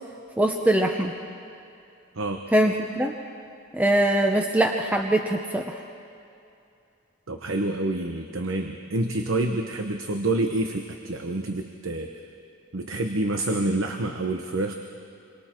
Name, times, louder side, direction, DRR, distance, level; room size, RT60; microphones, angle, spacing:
voice 1, 0.4-1.1 2.5-3.1 3.7-5.8, right 1 dB, 5° right, 2 dB, 0.8 m, -22 dB
voice 2, 7.3-12.1 12.7-14.7, right 2 dB, 70° right, 4 dB, 1.0 m, -27 dB
28.0 x 23.5 x 4.5 m, 2.6 s
head